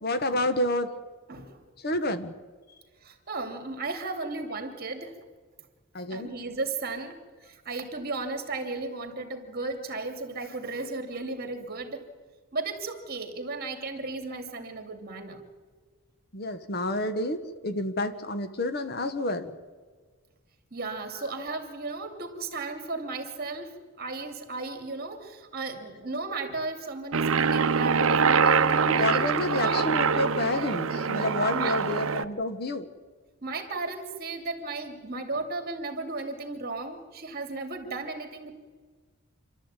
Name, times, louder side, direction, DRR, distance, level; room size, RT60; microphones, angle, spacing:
voice 1, 0.0-0.9 1.8-2.3 5.9-6.3 16.3-19.5 28.8-32.9, left 1 dB, 45° left, 10 dB, 1.2 m, -29 dB
voice 2, 1.3-1.6 3.0-5.2 6.1-12.0 12.5-15.4 20.7-29.8 31.5-31.8 33.4-38.5, right 3 dB, 45° right, 6 dB, 2.6 m, -35 dB
Aircraft, 27.1-32.2, right 5 dB, 65° right, 0.7 m, -24 dB
27.0 x 12.5 x 8.9 m, 1.5 s
head